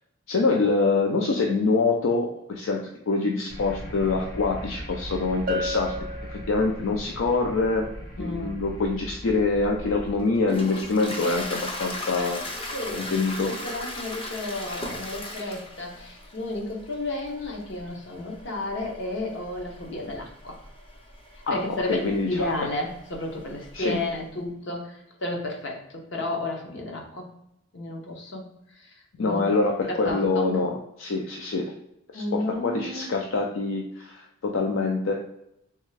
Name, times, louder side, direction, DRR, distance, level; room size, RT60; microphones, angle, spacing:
voice 1, 0.3-2.8 3.1-5.9 6.3-7.9 8.2-12.4 12.9-13.5 21.5-21.6 21.9-22.5 23.7-24.0 29.2-31.7 32.1-35.2, left 3 dB, 80° left, 1 dB, 0.5 m, -25 dB
sound 1, 3.5-10.2, equal, 40° left, 1.3 m, -39 dB
Bell, 5.5-7.1, left 1 dB, 40° right, 0.4 m, -33 dB
voice 2, 8.2-8.6 12.7-20.6 21.3-22.0 22.3-27.3 27.7-29.4 29.9-30.5 32.1-33.1, left 2 dB, 60° left, 1 dB, 0.9 m, -32 dB
Toilet flush, 9.4-24.2, left 1 dB, 25° left, 0.5 m, -39 dB
3.5 x 3.2 x 3.2 m, 0.82 s
head